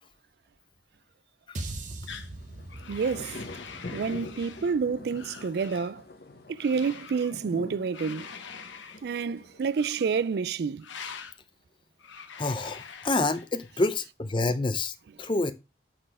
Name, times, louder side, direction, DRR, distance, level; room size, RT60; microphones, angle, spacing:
sound 1, 1.5-5.9, right 2 dB, 40° right, 0.9 m, -42 dB
sound 2, 2.1-2.3 2.7-4.8 5.1-5.9 6.6-7.4 7.9-9.1 9.7-10.3 10.8-11.4 12.0-13.8, left 6 dB, 85° left, 1.0 m, -45 dB
sound 3, 2.3-10.3, left 2 dB, 55° left, 0.8 m, -45 dB
voice 1, 2.9-3.4 3.9-6.0 6.5-8.3 9.0-10.9, right 5 dB, 55° right, 0.3 m, -29 dB
voice 2, 12.4-15.5, left 2 dB, 25° left, 0.5 m, -28 dB
7.8 x 4.1 x 4.8 m
head